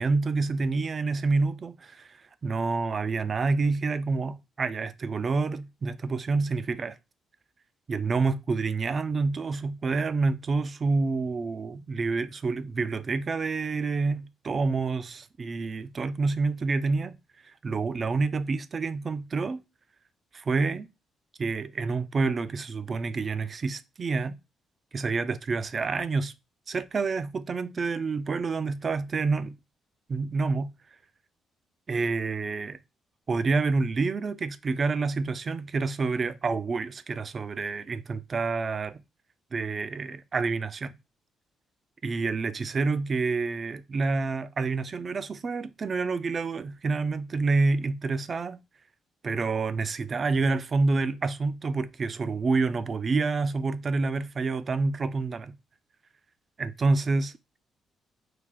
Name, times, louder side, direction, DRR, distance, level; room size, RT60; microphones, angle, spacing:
voice 1, 0.0-7.0 7.9-17.2 17.6-19.6 20.3-20.9 21.4-24.4 24.9-26.3 26.7-29.6 30.1-30.7 31.9-32.8 33.3-39.0 39.5-40.9 42.0-48.6 49.2-55.5 56.6-57.6, right 4 dB, 40° right, 0.4 m, -28 dB
4.8 x 2.4 x 3.7 m
cardioid pair, 90°, 0 cm